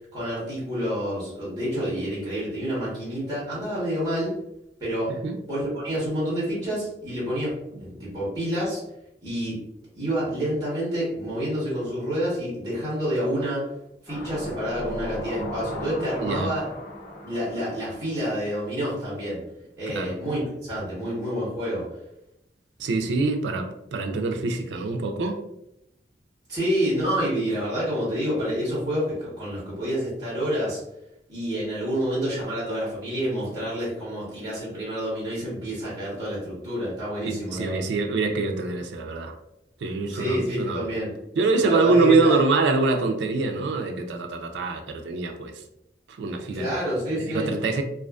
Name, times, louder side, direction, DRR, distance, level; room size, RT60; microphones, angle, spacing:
voice 1, 0.1-4.3 4.8-5.2 5.5-8.8 9.2-9.6 9.9-13.7 14.0-16.7 17.2-19.4 19.8-21.9 26.5-30.8 31.3-37.8 40.1-41.1 41.6-42.4 46.5-47.5, equal, 20° right, -9 dB, 1.0 m, -28 dB
sound 1, 14.1-19.0 19.3-19.4, equal, 10° left, 1.1 m, -37 dB
voice 2, 16.2-16.5 19.9-20.1 22.8-25.4 37.2-39.3 39.8-40.9 41.4-45.5 46.2-46.8 47.2-47.8, right 3 dB, 85° right, 5 dB, 0.3 m, -24 dB
2.4 x 2.4 x 2.3 m, 0.82 s
head